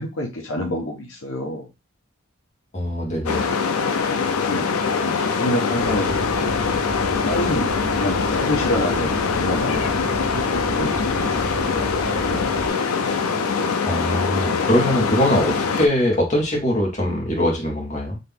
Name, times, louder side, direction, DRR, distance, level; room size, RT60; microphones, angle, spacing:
voice 1, 0.0-1.7 4.1-6.8 7.2-12.8, left 1 dB, 70° left, -1 dB, 1.0 m, -29 dB
voice 2, 2.7-3.5 13.9-18.2, left 1 dB, 35° left, -1 dB, 1.4 m, -22 dB
sound 1, 3.3-15.9, left 5 dB, 90° left, 0.5 m, -23 dB
sound 2, 5.8-12.7, right 1 dB, 65° right, 1.0 m, -33 dB
4.0 x 2.9 x 3.5 m, 0.25 s
head